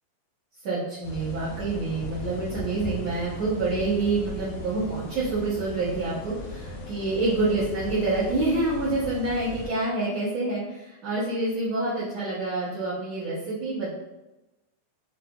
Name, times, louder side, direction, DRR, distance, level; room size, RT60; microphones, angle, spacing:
voice 1, 0.6-13.9, right 2 dB, 65° right, -14 dB, 1.7 m, -27 dB
sound 1, 1.0-9.7, left 2 dB, 85° left, 2.0 m, -38 dB
7.5 x 2.8 x 2.2 m, 1.0 s
omnidirectional pair, 5.2 m